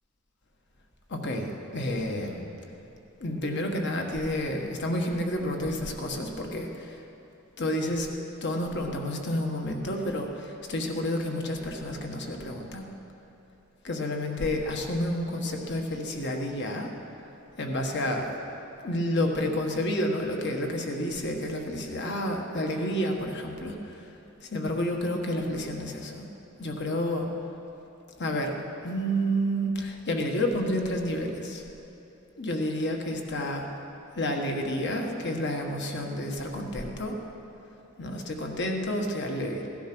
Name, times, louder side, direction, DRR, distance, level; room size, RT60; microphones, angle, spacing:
voice 1, 1.1-2.4 3.2-7.0 7.6-8.1 8.4-12.9 13.8-16.9 17.6-18.4 18.8-24.1 24.4-26.3 26.6-27.3 28.2-28.5 28.8-31.6 32.4-33.7 34.1-37.2 38.0-39.7, equal, 55° left, 2 dB, 1.5 m, -30 dB
17.5 x 11.5 x 6.2 m, 3.0 s
head